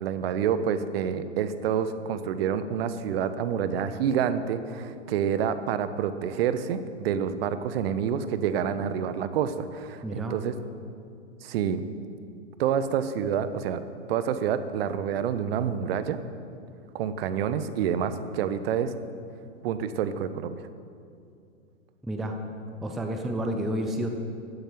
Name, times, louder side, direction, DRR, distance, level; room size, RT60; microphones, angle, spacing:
voice 1, 0.0-10.5 11.4-11.8 12.6-13.8 14.1-16.2 16.9-18.9 19.6-20.7, right 8 dB, 50° right, 11 dB, 1.2 m, -28 dB
voice 2, 10.0-10.4 22.0-22.4 22.8-24.1, right 1 dB, ahead, 4 dB, 0.3 m, -30 dB
15.0 x 10.0 x 9.3 m, 2.4 s
figure-of-eight pair, 115°, 39 cm